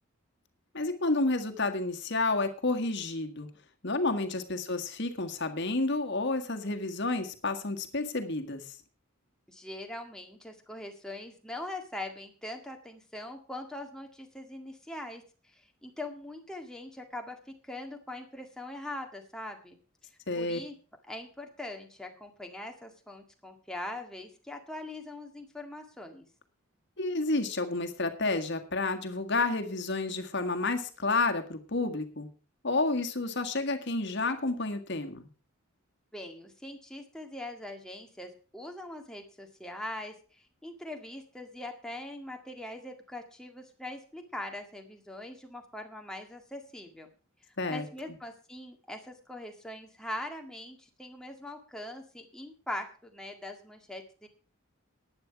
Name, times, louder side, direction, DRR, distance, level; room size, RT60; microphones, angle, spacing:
voice 1, 0.7-3.5 3.8-8.7 20.3-20.6 27.0-32.3 32.6-35.3 47.6-47.8, left 3 dB, 55° left, 6 dB, 1.7 m, -30 dB
voice 2, 9.5-15.2 15.5-17.4 17.6-19.8 20.3-20.7 21.0-26.3 36.1-47.1 47.7-54.3, left 1 dB, 5° left, 3 dB, 1.8 m, -42 dB
11.5 x 9.7 x 5.8 m, 0.37 s
head